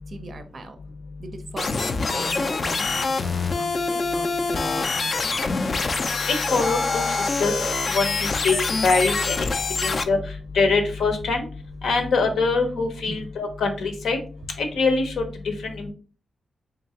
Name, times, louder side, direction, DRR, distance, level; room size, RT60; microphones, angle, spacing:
voice 1, 0.1-0.8 1.2-5.4 13.1-13.2, right 2 dB, 40° right, 8 dB, 0.5 m, -39 dB
sound 1, 1.6-10.0, left 3 dB, 40° left, 0.3 m, -25 dB
voice 2, 6.5-7.6 7.9-9.4 9.8-10.2 10.5-11.4 11.8-14.2 14.6-15.1 15.6-15.9, left 4 dB, 85° left, 5 dB, 0.8 m, -23 dB
3.8 x 3.2 x 2.8 m, 0.38 s
wide cardioid pair, 145°, 0 cm